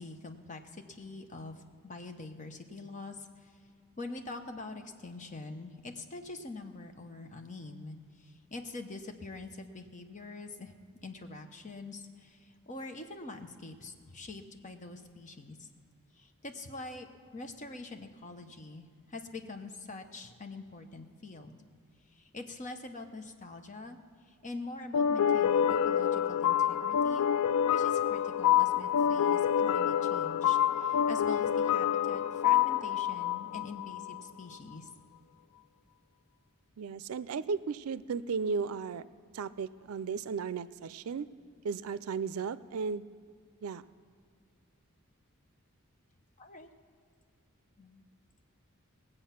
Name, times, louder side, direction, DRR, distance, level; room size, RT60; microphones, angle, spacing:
voice 1, 0.0-3.5 4.0-10.7 11.0-15.7 16.2-17.1 17.3-21.6 22.1-24.0 24.3-27.3 27.6-34.9 46.4-46.7 47.8-48.0, left 3 dB, 35° left, 6 dB, 0.9 m, -45 dB
sound 1, 24.9-34.2, left 9 dB, 85° left, 0.3 m, -27 dB
voice 2, 36.8-39.0 39.3-41.3 41.6-43.0 43.6-43.9, right 5 dB, 80° right, 16 dB, 0.4 m, -35 dB
19.5 x 7.9 x 5.8 m, 2.2 s
head